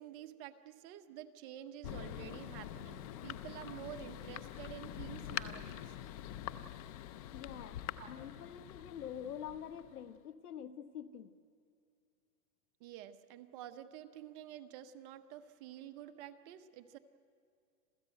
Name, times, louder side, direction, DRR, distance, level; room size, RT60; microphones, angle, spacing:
voice 1, 0.0-5.9 8.0-8.1 12.8-17.0, right 11 dB, 30° right, 9 dB, 0.9 m, -49 dB
Thunder, 1.8-10.2, left 12 dB, 25° left, 0.5 m, -45 dB
voice 2, 7.3-11.3, left 9 dB, 85° left, 12 dB, 1.5 m, -46 dB
27.5 x 15.0 x 9.1 m, 2.5 s
hypercardioid pair, 150°, 44 cm